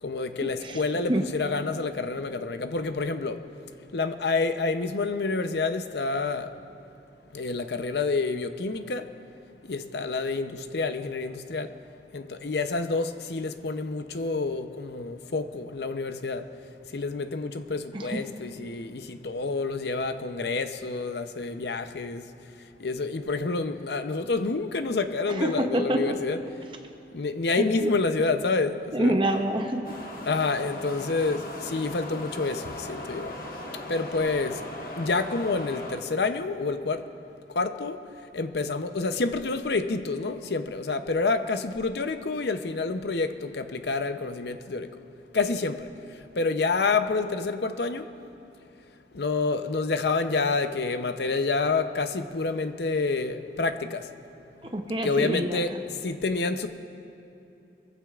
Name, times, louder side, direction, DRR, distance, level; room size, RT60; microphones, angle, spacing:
voice 1, 0.0-3.5 3.9-6.5 7.3-9.1 9.6-11.7 12.1-16.5 16.9-22.3 22.8-26.4 27.1-29.2 30.2-33.4 33.7-34.7 35.0-37.1 37.5-38.0 38.3-45.0 45.3-48.1 49.1-54.1 54.6-54.7 55.0-56.7, left 3 dB, 75° left, 0.7 m, -28 dB
voice 2, 25.4-26.2 27.6-27.9 28.9-30.0 54.7-55.8, right 1 dB, 30° right, 0.7 m, -26 dB
sound 1, 29.8-36.0, left 1 dB, 50° left, 1.4 m, -38 dB
23.0 x 15.0 x 2.4 m
head